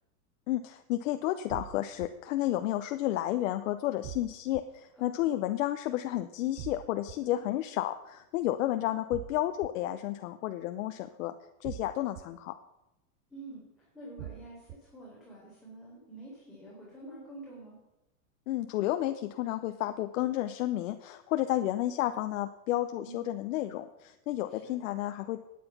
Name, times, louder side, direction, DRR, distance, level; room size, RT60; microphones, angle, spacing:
voice 1, 0.5-11.3 11.6-12.5 18.5-25.4, left 14 dB, 60° left, 8 dB, 0.8 m, -31 dB
sound 1, 1.5-2.1 4.0-4.6 6.6-7.1 9.1-9.7 11.6-12.2 14.2-14.8, right 14 dB, 40° right, 0.6 m, -42 dB
voice 2, 5.0-5.3 7.2-7.4 13.3-17.8 21.5-21.6 23.0-23.3 24.5-24.7, right 2 dB, ahead, -7 dB, 4.1 m, -48 dB
12.0 x 9.4 x 5.9 m, 0.94 s
supercardioid pair, 145°, 45 cm